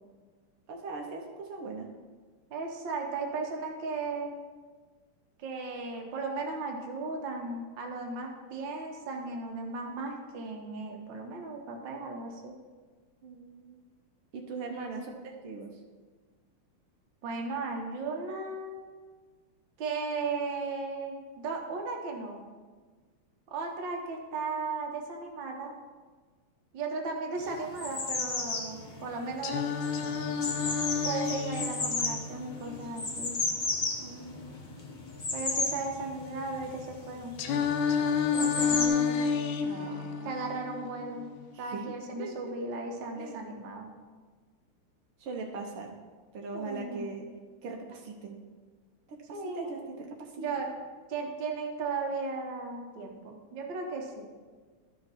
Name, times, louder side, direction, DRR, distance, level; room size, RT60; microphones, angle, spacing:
voice 1, 0.7-1.9 13.2-13.8 14.3-15.7 34.0-34.6 39.7-40.3 41.5-42.8 43.1-43.4 45.2-45.9 46.3-47.3 47.6-48.4 49.1-50.7, right 3 dB, 80° right, 1 dB, 1.8 m, -41 dB
voice 2, 2.5-4.3 5.4-12.5 14.7-14.9 17.2-18.8 19.8-22.4 23.5-25.7 26.7-29.7 31.0-33.4 35.3-37.4 38.3-39.2 40.2-41.3 41.6-43.9 46.5-47.0 49.3-49.8 50.4-50.7 51.1-54.3, right 3 dB, 60° right, 1 dB, 1.7 m, -36 dB
sound 1, 27.4-38.9, left 3 dB, 55° left, 0.5 m, -34 dB
Singing, 29.4-33.4 37.4-41.4, left 6 dB, 75° left, 1.4 m, -30 dB
12.5 x 5.3 x 4.2 m, 1.4 s
omnidirectional pair, 2.4 m